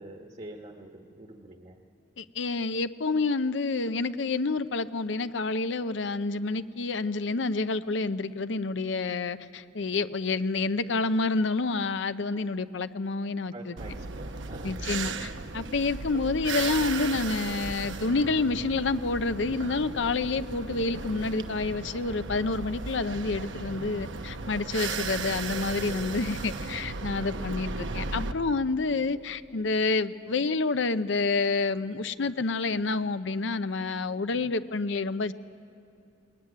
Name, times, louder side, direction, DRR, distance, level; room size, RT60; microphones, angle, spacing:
voice 1, 0.0-1.8 13.5-14.8 25.7-26.5, right 1 dB, 35° right, 2 dB, 1.3 m, -45 dB
voice 2, 2.2-13.8 14.6-35.3, left 3 dB, 70° left, 12 dB, 0.7 m, -28 dB
sound 1, 13.8-28.3, right 4 dB, 75° right, 1.0 m, -36 dB
20.5 x 20.0 x 9.7 m, 2.6 s
head